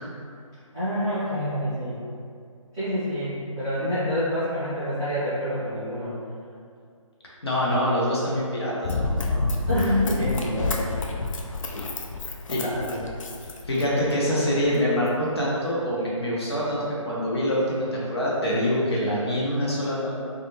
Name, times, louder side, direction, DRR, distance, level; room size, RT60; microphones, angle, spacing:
voice 1, 0.7-2.0 2.7-6.1 9.7-11.2 12.6-13.2, equal, 10° right, -18 dB, 0.4 m, -27 dB
voice 2, 7.4-9.5 12.5-12.6 13.7-20.1, equal, 50° left, -6 dB, 0.7 m, -25 dB
Run, 8.8-14.1 14.7-14.8, left 2 dB, 70° left, 0.4 m, -29 dB
2.4 x 2.2 x 3.0 m, 2.3 s
figure-of-eight pair, 155°, 17 cm